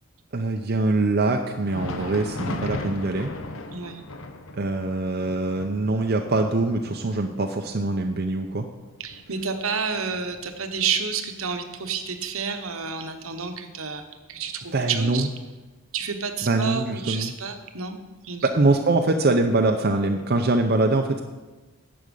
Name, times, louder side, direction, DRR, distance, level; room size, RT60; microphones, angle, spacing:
voice 1, 0.3-3.3 4.5-8.7 14.7-15.3 16.4-17.3 18.4-21.2, right 2 dB, 45° right, 3 dB, 0.6 m, -23 dB
Thunder, 1.5-11.0 11.3-11.5 12.2-12.3 13.3-13.4, left 2 dB, 70° left, 0.9 m, -37 dB
voice 2, 3.7-4.0 9.0-14.0 14.3-15.3 15.9-18.0 18.2-18.5, right 6 dB, 75° right, 6 dB, 1.1 m, -30 dB
11.5 x 7.8 x 5.4 m, 1.2 s
head